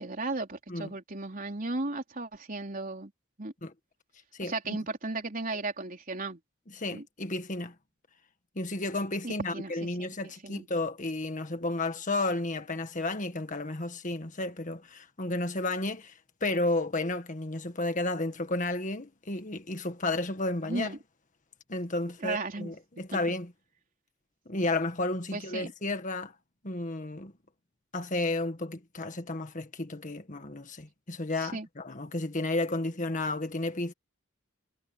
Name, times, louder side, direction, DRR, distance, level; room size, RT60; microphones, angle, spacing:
voice 1, 0.0-3.1 3.4-3.5 4.4-6.4 6.9-7.0 9.2-10.7 20.6-21.0 22.2-22.7 24.6-24.7 25.3-25.7 31.4-31.7, right 2 dB, 45° right, 3.7 m, -35 dB
voice 2, 6.7-7.7 8.6-16.1 16.4-20.9 21.7-23.5 24.5-26.3 26.6-27.3 27.9-33.9, left 2 dB, 40° left, 1.7 m, -32 dB
head